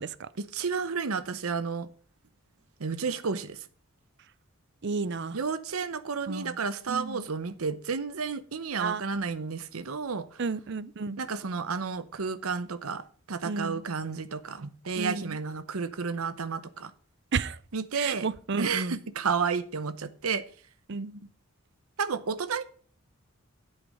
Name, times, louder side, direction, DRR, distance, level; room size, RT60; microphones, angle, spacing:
voice 1, 0.4-1.9 2.8-3.7 5.3-10.4 11.2-16.9 17.7-18.3 18.6-20.4 22.0-22.6, right 5 dB, 90° right, 0.8 m, -31 dB
voice 2, 4.8-5.4 6.3-6.6 6.9-7.3 8.8-9.0 10.4-11.2 13.4-13.8 14.9-15.4 17.3-17.6 17.9-19.0 20.9-21.2, right 4 dB, 55° right, 0.6 m, -32 dB
9.9 x 8.1 x 5.4 m
head